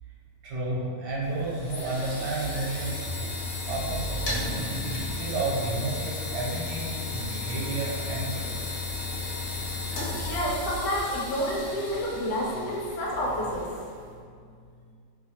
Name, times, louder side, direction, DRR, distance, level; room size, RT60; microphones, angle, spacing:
voice 1, 0.4-3.3 3.7-4.7 5.2-8.6, right 2 dB, 80° right, -5 dB, 1.3 m, -31 dB
sound 1, 1.2-14.0, left 2 dB, 65° left, 0.9 m, -34 dB
voice 2, 10.2-13.7, equal, 85° left, -4 dB, 1.2 m, -29 dB
2.8 x 2.5 x 2.7 m, 2.2 s
omnidirectional pair, 1.8 m